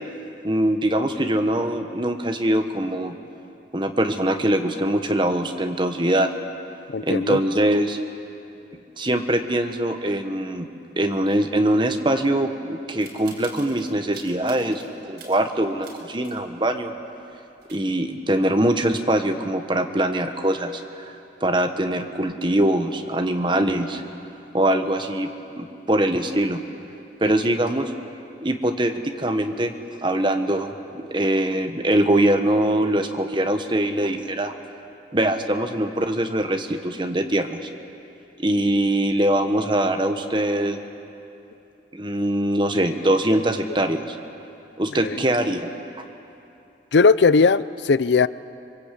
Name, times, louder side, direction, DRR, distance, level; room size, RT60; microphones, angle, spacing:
voice 1, 0.4-3.1 3.7-6.3 7.0-8.0 9.0-10.7 11.0-16.9 17.7-21.1 21.4-24.0 24.5-25.3 25.5-26.6 27.2-27.9 28.4-29.7 30.0-34.5 35.1-37.7 38.4-40.8 41.9-44.2 44.8-45.7, right 1 dB, 25° right, 6 dB, 1.3 m, -22 dB
voice 2, 6.9-7.4 27.3-27.4 45.0-45.2 46.9-48.3, left 4 dB, 85° left, 16 dB, 0.5 m, -18 dB
sound 1, 13.0-14.9 15.2-16.4 16.8-16.9 17.3-17.4 17.6-18.1, right 4 dB, 80° right, 5.0 m, -46 dB
25.0 x 23.0 x 8.5 m, 2.8 s
head